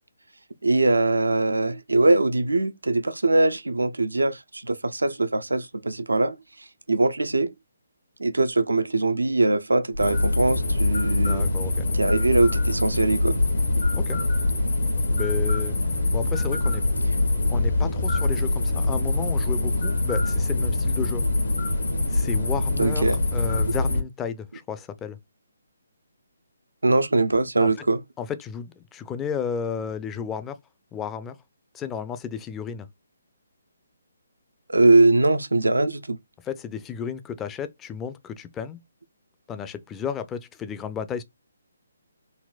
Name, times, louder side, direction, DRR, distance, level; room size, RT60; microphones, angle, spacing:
voice 1, 0.6-6.4 6.9-7.5 8.2-11.5 11.9-13.4 22.8-23.2 26.8-28.0 34.7-36.2, right 2 dB, 90° right, 0.5 m, -21 dB
sound 1, 9.9-24.0, left 2 dB, 75° left, 1.3 m, -24 dB
voice 2, 11.3-11.9 13.9-14.2 15.1-15.8 16.1-16.8 17.5-21.2 22.1-25.2 27.6-27.9 28.2-30.6 30.9-31.4 31.7-32.9 36.4-38.8 39.5-41.2, left 7 dB, 15° left, 0.4 m, -33 dB
4.0 x 2.1 x 2.3 m
figure-of-eight pair, 145°, 0 cm